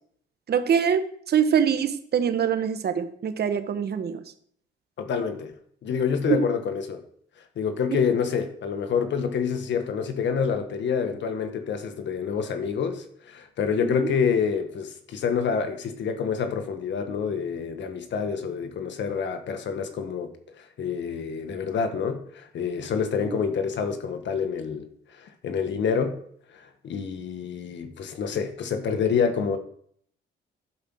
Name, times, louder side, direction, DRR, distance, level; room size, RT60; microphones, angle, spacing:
voice 1, 0.5-4.2 6.3-6.5 7.9-8.0 13.8-14.1 23.3-23.4, right 8 dB, 55° right, 9 dB, 1.2 m, -24 dB
voice 2, 5.0-5.5 5.8-7.0 7.5-20.3 20.6-24.9 25.2-26.2 26.5-29.6, left 6 dB, 65° left, 7 dB, 1.5 m, -27 dB
11.5 x 5.3 x 6.2 m, 0.64 s
cardioid pair, 90°, 20 cm